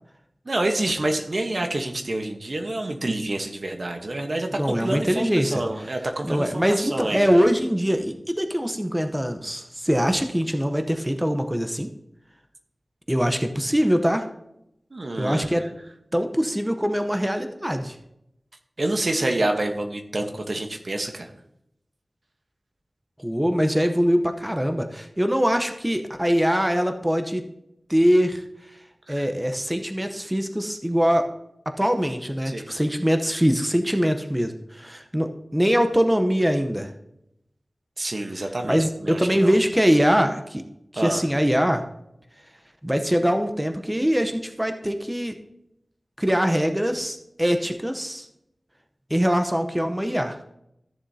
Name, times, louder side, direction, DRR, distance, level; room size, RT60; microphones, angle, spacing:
voice 1, 0.4-7.4 14.9-15.7 18.8-21.3 29.1-29.3 32.4-32.6 38.0-39.6 41.0-41.2, right 2 dB, 60° right, 4 dB, 1.0 m, -28 dB
voice 2, 4.6-5.6 6.2-11.9 13.1-14.3 15.2-15.7 16.1-18.0 23.2-27.5 27.9-28.4 29.1-31.3 31.7-36.9 38.6-40.6 40.9-41.9 42.8-45.4 46.2-48.3 49.1-50.4, equal, 10° right, 7 dB, 0.8 m, -23 dB
14.0 x 6.9 x 2.8 m, 0.80 s
wide cardioid pair, 50°, 0 cm